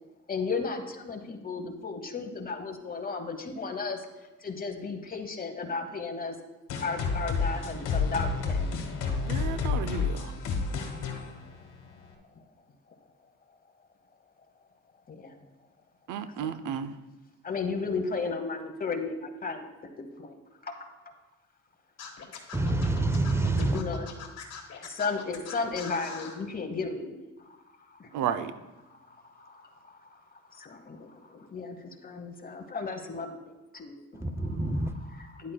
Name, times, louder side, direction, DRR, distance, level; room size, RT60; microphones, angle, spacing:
voice 1, 0.3-4.1 4.4-6.4 6.8-8.6 15.1-15.4 16.4-16.6 17.4-20.4 20.6-20.7 23.6-24.1 24.8-27.2 27.9-28.3 28.9-35.5, left 4 dB, 30° left, 6 dB, 1.0 m, -35 dB
sound 1, 6.7-12.1, left 5 dB, 90° left, 1.2 m, -30 dB
voice 2, 9.3-10.3 16.1-16.9 28.1-28.5, right 8 dB, 85° right, 11 dB, 0.6 m, -32 dB
Scratching (performance technique), 22.0-26.4, left 7 dB, 60° left, 1.4 m, -42 dB
voice 3, 22.5-23.8 34.1-34.9, right 2 dB, 10° right, 9 dB, 0.5 m, -27 dB
10.5 x 8.3 x 2.2 m, 1.1 s
cardioid pair, 90°, 30 cm